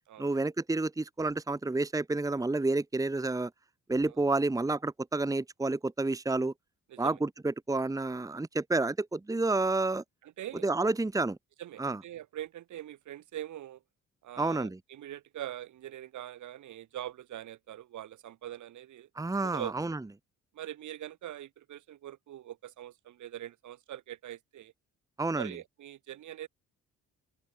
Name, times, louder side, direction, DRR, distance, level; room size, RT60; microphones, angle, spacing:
voice 1, 0.2-3.5 3.9-6.5 7.0-10.0 10.6-11.4 11.8-12.0 14.4-14.8 19.2-20.0 25.2-25.5, right 2 dB, 10° right, 1.2 m, -30 dB
voice 2, 10.2-10.7 11.6-13.8 14.2-19.1 19.4-19.7 20.5-24.7 25.4-26.5, right 12 dB, 75° right, 3.7 m, -43 dB
open air
cardioid pair, 90°, 30 cm